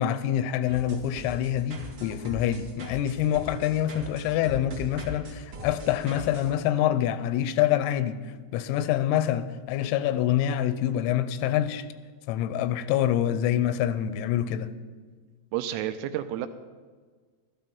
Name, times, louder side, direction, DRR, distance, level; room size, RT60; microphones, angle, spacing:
voice 1, 0.0-11.9 12.3-14.7, left 11 dB, 90° left, 3.4 m, -26 dB
sound 1, 0.7-6.5, equal, 65° right, 1.3 m, -41 dB
voice 2, 15.5-16.5, right 11 dB, 85° right, 3.0 m, -30 dB
13.0 x 13.0 x 5.2 m
omnidirectional pair, 6.0 m